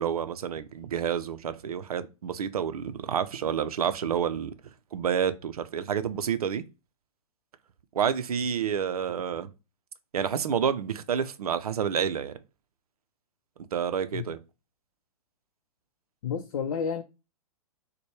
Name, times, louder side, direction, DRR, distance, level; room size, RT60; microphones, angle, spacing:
voice 1, 0.0-4.5 4.9-6.6 7.9-9.5 10.1-12.3 13.7-14.4, right 8 dB, 80° right, 0.5 m, -29 dB
voice 2, 16.2-17.0, left 7 dB, 60° left, 0.5 m, -30 dB
4.2 x 2.2 x 3.1 m
hypercardioid pair, 120°, 19 cm